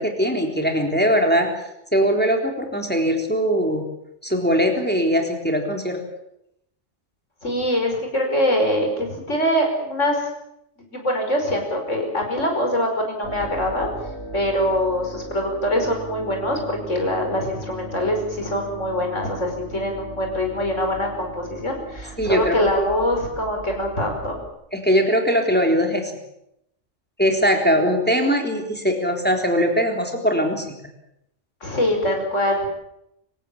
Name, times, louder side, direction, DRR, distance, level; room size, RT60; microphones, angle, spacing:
voice 1, 0.0-1.5 1.9-3.8 4.2-6.0 22.2-22.6 24.7-26.1 27.2-30.7, equal, 5° left, 2 dB, 3.8 m, -20 dB
voice 2, 7.4-10.3 10.9-13.9 14.3-24.4 27.7-27.8 31.6-32.7, equal, 70° left, 2 dB, 5.7 m, -23 dB
sound 1, 13.2-24.5, right 2 dB, 60° right, 4.8 m, -38 dB
25.5 x 17.0 x 8.7 m, 0.81 s
omnidirectional pair, 1.3 m